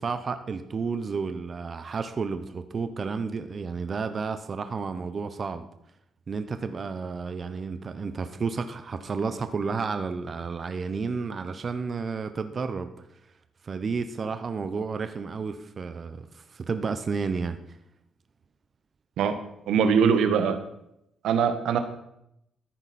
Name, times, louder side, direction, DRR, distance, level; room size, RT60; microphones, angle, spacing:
voice 1, 0.0-5.7 6.3-12.9 13.6-17.6, right 5 dB, 40° right, 9 dB, 0.8 m, -31 dB
voice 2, 19.7-20.6 21.2-21.8, right 6 dB, 80° right, 8 dB, 1.2 m, -22 dB
14.0 x 9.8 x 4.2 m, 0.80 s
cardioid pair, 90°, 0 cm